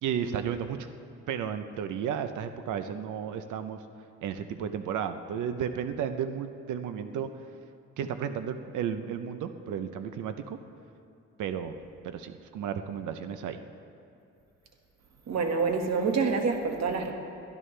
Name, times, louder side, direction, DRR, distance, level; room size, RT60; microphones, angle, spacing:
voice 1, 0.0-0.9 1.3-3.8 4.2-7.3 8.0-10.6 11.4-11.7 12.0-13.6, right 8 dB, 80° right, 9 dB, 0.8 m, -33 dB
voice 2, 15.3-17.1, right 4 dB, 60° right, 3 dB, 1.9 m, -27 dB
22.0 x 12.0 x 3.3 m, 2.7 s
cardioid pair, 90°, 30 cm